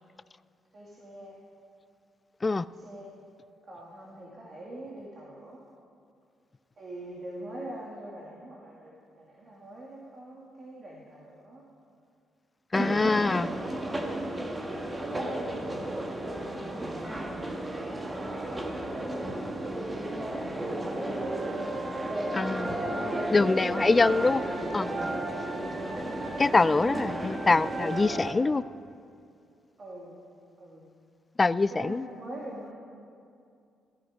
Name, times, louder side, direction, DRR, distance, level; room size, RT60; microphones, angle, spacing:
voice 1, 0.7-1.3 2.7-3.1 3.7-5.6 6.8-11.6 13.0-13.5 15.0-17.5 18.1-18.9 20.3-22.4 23.0-24.0 29.8-30.2 30.6-30.9 31.5-32.7, right 1 dB, 45° right, -4 dB, 2.5 m, -44 dB
voice 2, 12.7-13.5 22.3-22.8 23.3-24.4 24.7-25.1 26.4-28.6 31.4-32.1, left 3 dB, 25° left, 18 dB, 0.3 m, -24 dB
sound 1, 12.7-28.3, right 1 dB, 20° right, 1.5 m, -33 dB
15.0 x 14.5 x 5.2 m, 2.4 s
cardioid pair, 90°, 0 cm